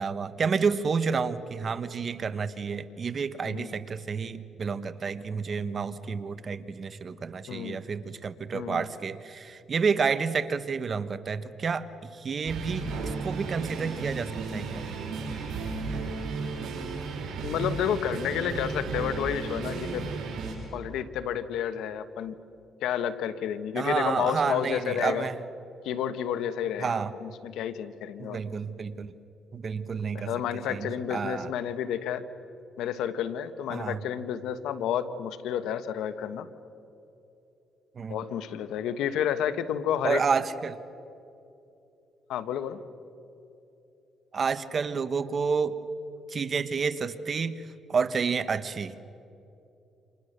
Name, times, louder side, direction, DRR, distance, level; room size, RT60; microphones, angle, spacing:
voice 1, 0.0-14.8 23.7-25.4 26.8-27.1 28.2-29.1 29.5-30.3 30.7-31.5 33.7-34.0 37.9-38.2 40.0-40.8 44.3-45.8 46.3-48.9, right 5 dB, 45° right, 12 dB, 1.4 m, -30 dB
voice 2, 7.5-7.8 8.5-8.9 17.4-20.1 20.7-22.3 22.8-25.3 25.8-28.4 30.1-32.2 32.8-36.5 38.1-40.2 42.3-42.8, left 9 dB, 85° left, 11 dB, 1.3 m, -30 dB
sound 1, 12.5-20.6, right 4 dB, 70° right, 7.7 m, -34 dB
30.0 x 27.0 x 6.7 m, 2.8 s
cardioid pair, 90°, 0 cm